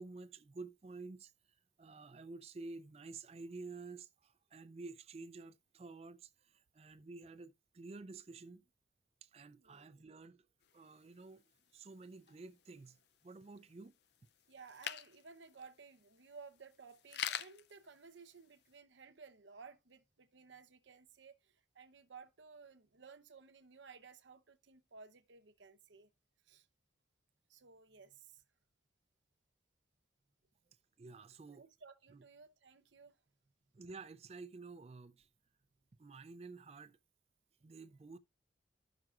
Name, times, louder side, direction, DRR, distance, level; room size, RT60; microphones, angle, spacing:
voice 1, 0.0-8.6 9.2-10.5 10.7-11.4 11.7-13.9 31.0-31.7 32.1-32.2 33.7-35.3 36.0-37.0 37.6-38.2, right 3 dB, 35° right, 0.4 m, -51 dB
sound 1, 10.6-18.8, left 9 dB, 65° left, 0.4 m, -49 dB
voice 2, 14.5-26.1 26.4-26.7 27.5-28.4 31.5-33.2, right 5 dB, 80° right, 0.8 m, -57 dB
14.0 x 6.0 x 2.4 m
head